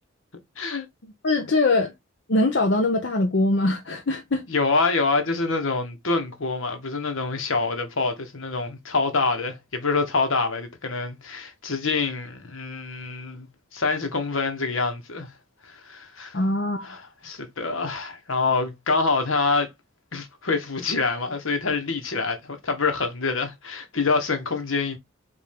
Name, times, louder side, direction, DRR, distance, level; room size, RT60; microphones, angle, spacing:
voice 1, 1.2-1.9 2.3-4.4 16.3-16.9, left 2 dB, 60° left, 0.7 m, -22 dB
voice 2, 4.5-13.5 13.7-15.3 15.6-16.4 16.8-19.7 20.1-25.0, left 4 dB, 80° left, 1.2 m, -26 dB
5.3 x 2.6 x 3.4 m
head